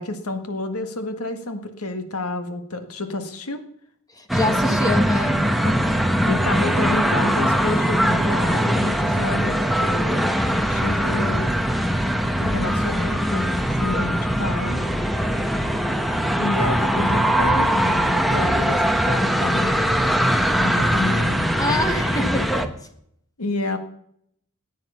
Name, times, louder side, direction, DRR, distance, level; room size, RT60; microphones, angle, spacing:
voice 1, 0.0-3.6 5.6-5.8 6.3-10.2 10.7-11.5 12.4-14.8 16.4-21.4 23.4-23.8, left 2 dB, 70° left, 8 dB, 1.6 m, -29 dB
voice 2, 4.1-5.5 21.6-22.7, left 2 dB, 15° left, 6 dB, 1.6 m, -25 dB
sound 1, 4.3-22.7, equal, ahead, 1.0 m, -21 dB
17.5 x 9.6 x 5.6 m, 0.70 s
head